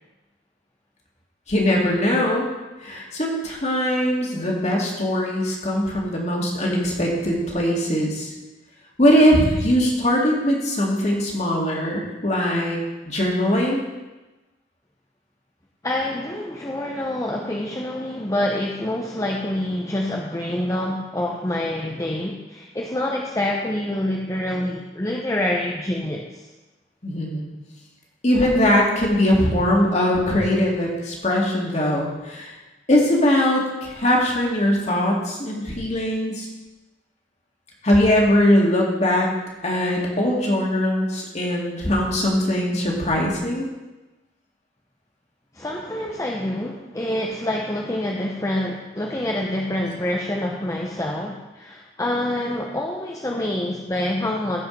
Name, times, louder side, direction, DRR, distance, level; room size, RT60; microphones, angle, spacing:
voice 1, 1.5-2.5 2.8-8.3 9.0-12.8 13.0-13.8 27.0-27.5 28.2-32.5 32.9-36.5 37.8-39.3 39.6-43.6, left 1 dB, 40° left, -2 dB, 2.3 m, -21 dB
voice 2, 15.8-26.5 45.5-54.6, left 1 dB, 20° left, 0 dB, 0.7 m, -26 dB
15.5 x 5.2 x 5.2 m, 1.1 s
head